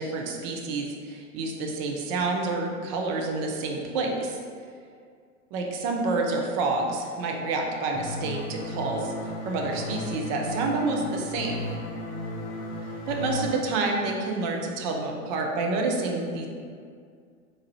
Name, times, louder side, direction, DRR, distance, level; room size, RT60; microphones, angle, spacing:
voice 1, 0.0-4.4 5.5-9.1 9.4-11.7 13.1-16.5, right 3 dB, 35° right, 1 dB, 0.5 m, -28 dB
sound 1, 7.9-13.5, left 1 dB, 30° left, 0.4 m, -35 dB
3.7 x 2.6 x 3.1 m, 2.1 s
figure-of-eight pair, 90°, 43 cm